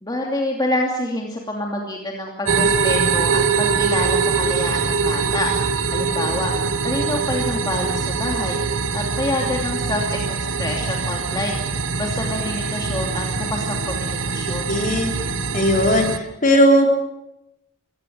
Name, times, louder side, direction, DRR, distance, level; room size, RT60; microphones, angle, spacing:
voice 1, 0.0-5.5 5.9-6.5 6.8-8.6 8.9-11.6 12.0-14.7, left 1 dB, 20° left, 0 dB, 2.7 m, -27 dB
sound 1, 2.4-16.2, right 5 dB, 80° right, 1.5 m, -23 dB
voice 2, 14.7-15.1 15.5-16.9, equal, 40° left, 3 dB, 4.0 m, -17 dB
23.0 x 17.0 x 8.4 m, 0.88 s
head